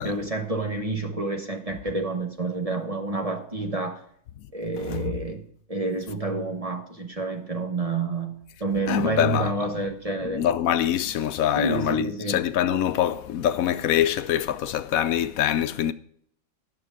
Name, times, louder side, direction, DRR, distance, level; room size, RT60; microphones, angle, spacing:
voice 1, 0.0-4.0 4.5-5.4 5.7-10.5 11.6-12.4, right 3 dB, 30° right, 1.1 m, -29 dB
voice 2, 8.9-9.5 10.3-15.9, left 10 dB, 80° left, 1.0 m, -24 dB
11.5 x 6.7 x 4.8 m
omnidirectional pair, 1.5 m